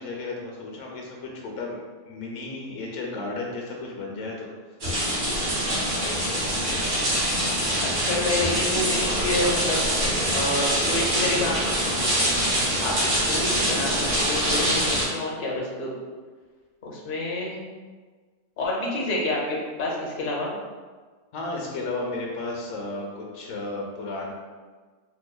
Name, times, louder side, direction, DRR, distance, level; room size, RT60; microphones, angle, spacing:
voice 1, 0.0-4.5 21.3-24.3, left 2 dB, 85° left, 0 dB, 1.0 m, -33 dB
sound 1, 4.8-15.0, equal, 75° right, 1.4 m, -24 dB
voice 2, 6.7-7.1 7.8-9.8 10.3-11.7 12.8-15.9 16.8-17.6 18.6-20.5, left 2 dB, 50° left, -2 dB, 0.8 m, -29 dB
3.9 x 2.6 x 2.2 m, 1.4 s
omnidirectional pair, 1.3 m